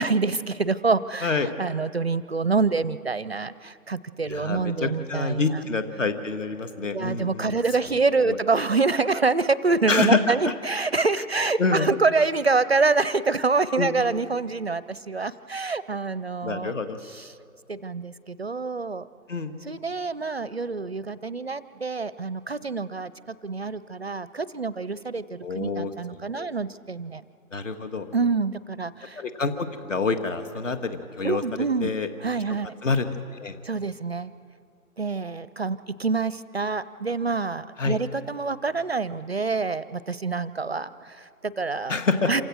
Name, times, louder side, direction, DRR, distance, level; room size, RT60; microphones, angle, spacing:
voice 1, 0.0-5.7 6.0-6.1 6.9-16.8 17.0-17.3 17.7-19.1 19.7-27.2 28.1-29.2 31.2-31.9 32.2-32.7 33.6-34.3 35.0-42.0 42.3-42.4, right 4 dB, 45° right, 17 dB, 0.5 m, -26 dB
voice 2, 4.3-7.6 8.2-8.4 9.9-10.5 11.6-11.9 13.8-14.0 16.4-17.0 19.3-19.6 25.4-26.5 27.5-28.1 29.2-31.4 31.8-32.1 32.8-33.6 37.8-38.0 41.9-42.3, left 4 dB, 60° left, 8 dB, 1.9 m, -27 dB
27.0 x 16.5 x 6.2 m, 2.4 s
hypercardioid pair, 165°, 43 cm